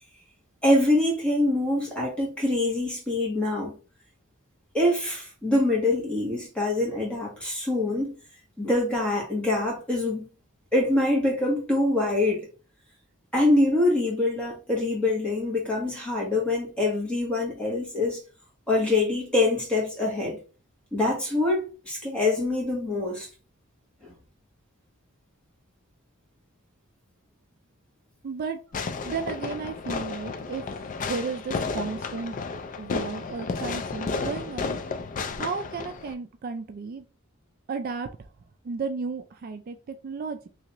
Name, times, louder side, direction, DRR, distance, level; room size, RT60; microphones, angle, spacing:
voice 1, 0.6-3.7 4.7-8.1 8.6-10.3 10.7-12.4 13.3-18.2 18.7-20.4 20.9-23.3 24.0-24.1, left 2 dB, 5° left, 1.3 m, -24 dB
voice 2, 28.2-28.6 29.0-30.6 31.0-32.3 32.8-34.8 35.4-37.0 37.7-38.1 38.6-40.5, right 5 dB, 45° right, 0.3 m, -33 dB
Fireworks, 28.7-36.1, left 4 dB, 40° left, 0.4 m, -32 dB
3.2 x 2.8 x 2.9 m
head